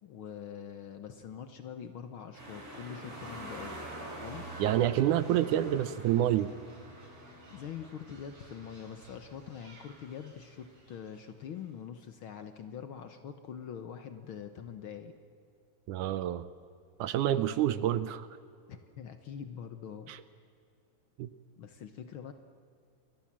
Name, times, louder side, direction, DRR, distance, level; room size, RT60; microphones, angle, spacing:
voice 1, 0.0-3.8 4.2-4.5 7.5-15.1 18.7-20.1 21.6-22.3, left 8 dB, 85° left, 8 dB, 1.1 m, -44 dB
sound 1, 2.3-11.2 11.6-11.7, right 1 dB, 45° right, 7.6 m, -46 dB
voice 2, 4.6-6.5 15.9-16.5 17.0-18.3 20.1-20.2 21.2-21.3, right 12 dB, 75° right, 14 dB, 2.0 m, -28 dB
29.0 x 22.5 x 7.5 m, 2.4 s
omnidirectional pair, 4.0 m